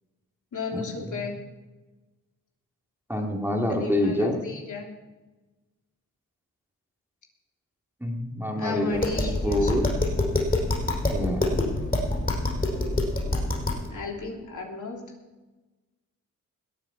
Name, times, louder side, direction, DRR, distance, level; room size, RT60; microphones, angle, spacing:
voice 1, 0.5-1.3 3.7-4.9 8.6-9.7 13.9-15.0, left 4 dB, 65° left, 0 dB, 3.3 m, -34 dB
voice 2, 3.1-4.4 8.0-9.9 11.1-11.6, left 1 dB, 5° right, 0 dB, 2.3 m, -27 dB
Tap, 8.9-13.9, left 2 dB, 25° left, 6.1 m, -26 dB
21.0 x 8.8 x 5.0 m, 1.2 s
cardioid pair, 85°, 33 cm